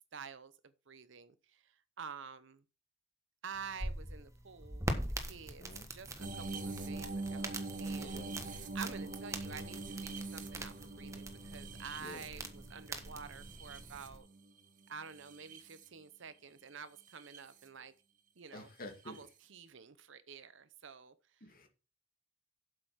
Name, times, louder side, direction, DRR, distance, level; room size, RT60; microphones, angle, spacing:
voice 1, 0.1-2.6 3.4-14.3 14.9-17.9 18.4-18.7 19.1-21.4, right 6 dB, 70° right, 0.8 m, -49 dB
sound 1, 3.5-14.2, right 1 dB, 15° right, 1.4 m, -43 dB
sound 2, 6.2-14.5 15.1-15.9 17.1-17.4 19.1-19.2, right 2 dB, 45° right, 1.2 m, -43 dB
voice 2, 18.5-19.2 21.4-21.7, left 2 dB, 45° left, 2.3 m, -49 dB
8.0 x 6.7 x 5.7 m
head